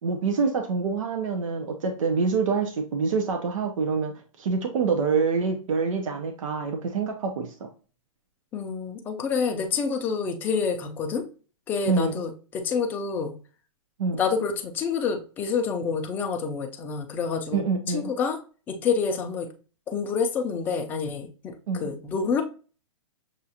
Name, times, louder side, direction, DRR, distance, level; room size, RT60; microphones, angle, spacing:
voice 1, 0.0-4.1 4.4-7.7 11.9-12.2 14.0-14.2 17.5-18.1 21.7-21.9, right 5 dB, 75° right, 4 dB, 0.8 m, -26 dB
voice 2, 8.5-11.2 11.7-13.4 14.2-17.6 17.9-18.4 18.7-19.5 19.9-22.4, left 5 dB, 10° left, 3 dB, 0.4 m, -28 dB
6.4 x 2.4 x 2.8 m, 0.37 s
hypercardioid pair, 165°, 17 cm